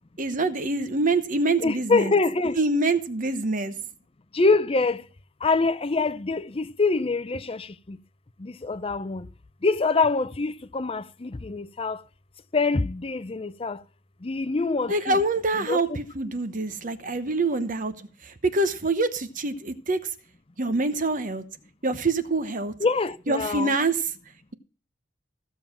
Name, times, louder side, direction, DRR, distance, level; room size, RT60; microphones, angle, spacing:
voice 1, 0.2-2.1 2.6-3.7 14.9-20.0 20.6-21.4 21.8-22.7 23.3-24.0, right 2 dB, 45° right, 1.0 m, -25 dB
voice 2, 1.6-2.6 4.3-5.0 5.4-8.0 8.4-9.3 9.6-12.0 12.5-13.8 14.2-15.2 15.5-16.0 17.5-17.6 22.8-23.7, left 3 dB, 30° left, 0.5 m, -25 dB
15.5 x 7.0 x 5.9 m
head